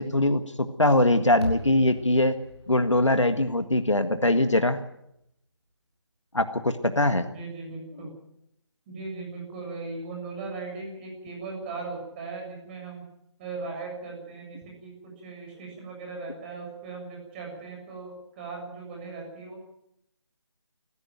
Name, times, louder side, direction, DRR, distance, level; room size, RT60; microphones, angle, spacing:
voice 1, 0.0-2.4 2.7-4.8 6.3-7.2, left 1 dB, 85° left, 8 dB, 1.7 m, -22 dB
sound 1, 1.4-5.7, right 1 dB, 70° right, 7.0 m, -41 dB
voice 2, 7.3-8.1 8.9-13.0 13.4-19.7, right 3 dB, 20° right, 0 dB, 7.4 m, -38 dB
21.0 x 15.5 x 9.2 m, 0.78 s
figure-of-eight pair, 155°, 15 cm